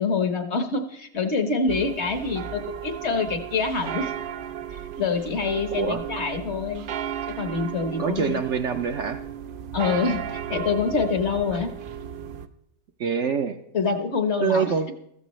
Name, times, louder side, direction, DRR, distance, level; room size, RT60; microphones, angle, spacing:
voice 1, 0.0-4.1 4.7-6.8 7.3-8.4 9.7-11.7 13.7-14.9, left 4 dB, 50° left, 7 dB, 1.2 m, -26 dB
sound 1, 1.7-12.5, right 9 dB, 80° right, 0.4 m, -35 dB
voice 2, 5.7-6.0 8.0-9.2 11.5-11.6 13.0-13.6 14.4-14.9, right 6 dB, 60° right, 6 dB, 0.8 m, -25 dB
15.0 x 13.5 x 3.1 m, 0.73 s
omnidirectional pair, 1.6 m